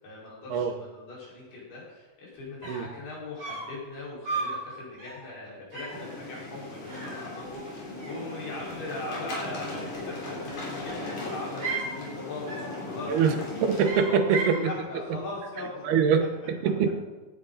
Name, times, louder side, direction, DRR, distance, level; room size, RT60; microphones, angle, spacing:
voice 1, 0.0-13.4 13.9-14.2 14.5-16.0, left 2 dB, 90° left, -5 dB, 7.3 m, -39 dB
sound 1, 2.3-2.4 2.6-3.0 3.4-3.8 4.3-4.6 5.0-5.3 5.7-6.1 6.9-7.7 8.0-8.7 9.9-10.6 11.0-12.0 12.5-12.8 13.1-13.4 13.8-14.6, right 3 dB, 45° right, 6.6 m, -36 dB
sound 2, 5.9-13.9, left 2 dB, 50° left, 4.8 m, -38 dB
voice 2, 13.6-14.7 15.8-16.9, right 6 dB, 85° right, 7 dB, 3.2 m, -24 dB
16.5 x 11.0 x 4.2 m, 1.3 s
omnidirectional pair, 4.4 m